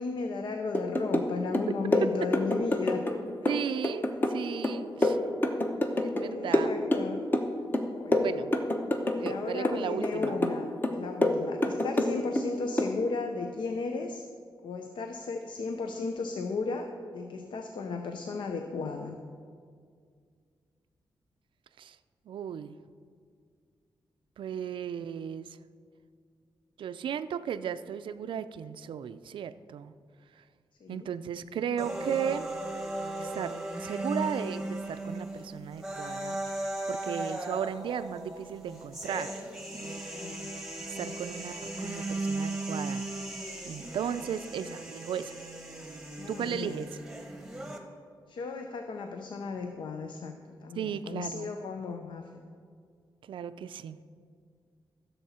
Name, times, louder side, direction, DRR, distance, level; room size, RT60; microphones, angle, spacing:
voice 1, 0.0-3.1 3.4-3.9 6.2-7.2 7.9-8.3 9.1-10.7 10.9-14.2 14.6-19.2 30.8-31.1 40.1-41.2 46.2-46.8 48.3-52.4, left 4 dB, 70° left, 5 dB, 0.6 m, -35 dB
sound 1, 0.7-1.3 1.5-3.2 3.5-6.3 6.5-7.5 7.7-9.4 9.6-10.6 10.8-12.5 12.8-13.0, left 1 dB, 25° left, 0.8 m, -27 dB
voice 2, 3.5-5.2 6.0-6.7 8.2-8.5 9.2-10.4 21.8-22.0 22.3-22.8 24.4-25.6 26.8-29.9 30.9-32.5 33.2-36.4 36.9-39.3 41.0-43.2 43.6-45.4 46.3-46.9 50.8-51.5 53.3-54.0, right 8 dB, 80° right, 12 dB, 0.4 m, -35 dB
sound 2, 31.8-47.8, right 2 dB, 5° right, 1.1 m, -37 dB
14.5 x 6.9 x 4.3 m, 2.1 s
wide cardioid pair, 140°, 8 cm